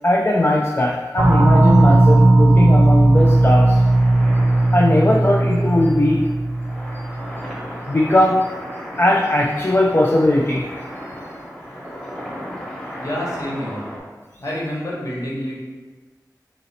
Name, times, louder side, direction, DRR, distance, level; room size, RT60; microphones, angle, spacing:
voice 1, 0.0-3.8 4.7-6.3 7.9-8.5 9.0-10.7, left 1 dB, 30° left, -1 dB, 0.3 m, -18 dB
sound 1, 1.2-7.5, right 2 dB, 40° right, 0.4 m, -15 dB
sound 2, 3.1-14.0, equal, 10° left, 1.1 m, -35 dB
voice 2, 13.0-13.9 14.4-15.6, equal, 50° left, -5 dB, 1.2 m, -28 dB
3.9 x 2.7 x 4.2 m, 1.3 s
wide cardioid pair, 65°, 7 cm